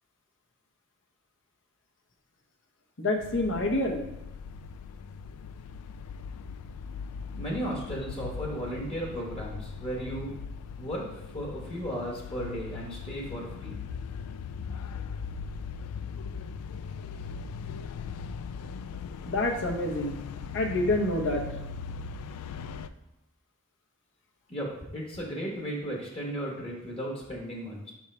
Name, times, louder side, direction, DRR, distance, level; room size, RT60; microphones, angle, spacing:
voice 1, 3.0-4.0 19.3-20.2 20.5-21.5, left 2 dB, 60° left, 2 dB, 0.9 m, -27 dB
sound 1, 3.2-22.9, left 5 dB, 80° left, 0.3 m, -39 dB
voice 2, 7.3-10.3 10.8-11.0 11.3-13.7 24.5-27.9, equal, 25° left, -2 dB, 1.1 m, -35 dB
6.1 x 3.6 x 4.3 m, 0.92 s
head